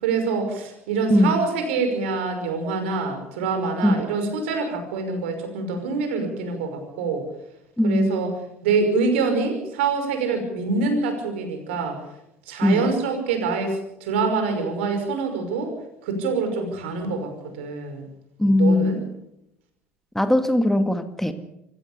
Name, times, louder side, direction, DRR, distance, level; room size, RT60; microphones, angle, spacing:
voice 1, 0.0-7.3 7.8-8.4 8.6-12.0 12.5-15.7 16.0-18.1 18.6-19.0, right 4 dB, 75° right, 6 dB, 5.7 m, -25 dB
voice 2, 7.8-8.2 12.6-12.9 18.4-19.0 20.2-21.3, left 1 dB, 5° left, 9 dB, 2.0 m, -19 dB
25.0 x 16.5 x 6.9 m, 0.82 s
hypercardioid pair, 65°, 6 cm